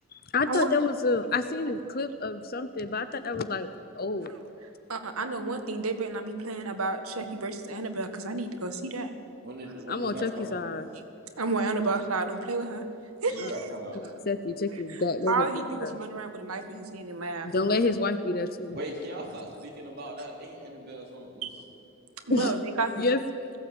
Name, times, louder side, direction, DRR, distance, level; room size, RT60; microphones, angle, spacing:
voice 1, 0.3-3.7 4.0-4.3 9.9-10.9 13.4-13.5 13.9-15.9 17.4-18.8 22.3-22.6 23.0-23.2, left 3 dB, 45° left, 11 dB, 0.7 m, -28 dB
voice 2, 4.9-9.1 11.4-12.8 13.2-13.7 14.9-17.5 21.4-21.5 22.3-23.1, right 3 dB, 90° right, 7 dB, 1.8 m, -31 dB
voice 3, 9.4-10.6 13.3-14.0 18.7-21.5, right 1 dB, 45° right, -2 dB, 3.9 m, -39 dB
20.5 x 16.0 x 8.9 m, 2.6 s
head